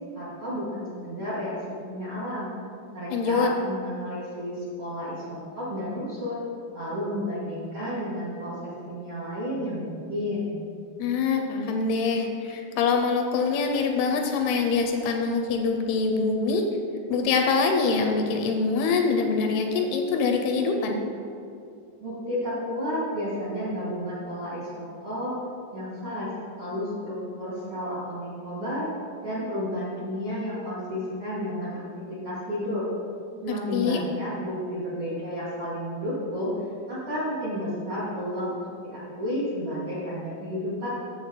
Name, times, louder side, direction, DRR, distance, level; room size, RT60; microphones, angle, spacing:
voice 1, 0.1-1.5 1.8-2.5 2.9-6.4 6.7-10.5 22.0-25.3 25.7-26.3 26.6-28.9 29.2-32.8 33.4-36.5 36.9-40.9, equal, 60° right, -10 dB, 1.4 m, -32 dB
voice 2, 3.1-3.5 11.0-16.7 17.1-21.0 33.7-34.0, left 4 dB, 80° left, 4 dB, 2.5 m, -24 dB
8.0 x 7.3 x 3.8 m, 2.4 s
omnidirectional pair, 4.7 m